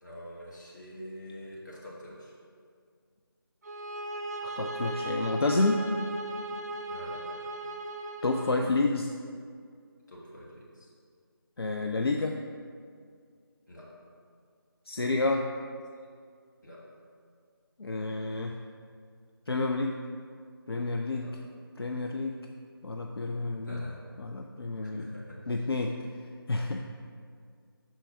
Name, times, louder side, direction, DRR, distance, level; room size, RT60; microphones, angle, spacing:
voice 1, 0.0-2.3 6.9-7.4 10.1-10.9 13.7-13.9 16.6-16.8 21.1-21.3 23.6-24.0 25.0-25.4, equal, 50° left, -5 dB, 1.6 m, -45 dB
sound 1, 3.6-8.6, right 2 dB, 40° right, 0.5 m, -36 dB
voice 2, 4.4-5.8 8.2-9.1 11.6-12.4 14.9-15.4 17.8-18.6 19.5-19.9 20.7-21.3 21.8-22.4 22.8-23.8 24.2-25.1 25.5-25.9 26.5-27.0, left 3 dB, 75° left, 2 dB, 0.5 m, -29 dB
6.3 x 4.4 x 4.6 m, 2.1 s
figure-of-eight pair, 165°, 13 cm